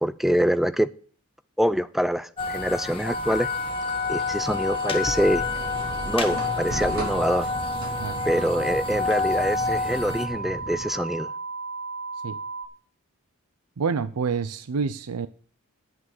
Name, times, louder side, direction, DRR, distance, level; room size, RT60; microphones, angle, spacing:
voice 1, 0.0-0.9 1.6-3.5 4.1-5.4 6.1-7.5 8.2-11.3, equal, ahead, 0.5 m, -25 dB
sound 1, 2.4-10.3, left 5 dB, 25° left, 1.7 m, -29 dB
sound 2, 3.1-12.7, right 3 dB, 45° left, 1.8 m, -34 dB
sound 3, 5.1-10.9, right 1 dB, 65° right, 4.7 m, -36 dB
voice 2, 13.8-15.3, right 5 dB, 85° right, 0.6 m, -27 dB
10.5 x 7.6 x 6.0 m
head